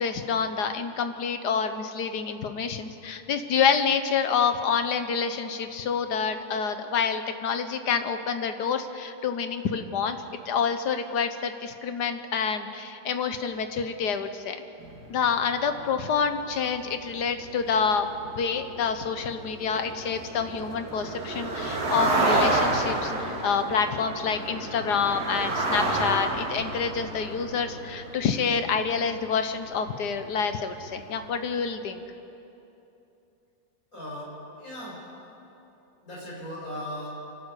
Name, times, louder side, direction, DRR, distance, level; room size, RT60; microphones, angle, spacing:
voice 1, 0.0-10.2 10.4-14.6 15.1-32.0, left 6 dB, 80° left, 8 dB, 1.7 m, -27 dB
sound 1, 14.8-30.1 30.4-30.7 31.1-31.3, right 2 dB, 70° right, 2.8 m, -31 dB
voice 2, 33.9-35.0 36.0-37.1, equal, 55° left, -5 dB, 6.6 m, -37 dB
26.5 x 12.5 x 8.3 m, 2.9 s
omnidirectional pair, 1.8 m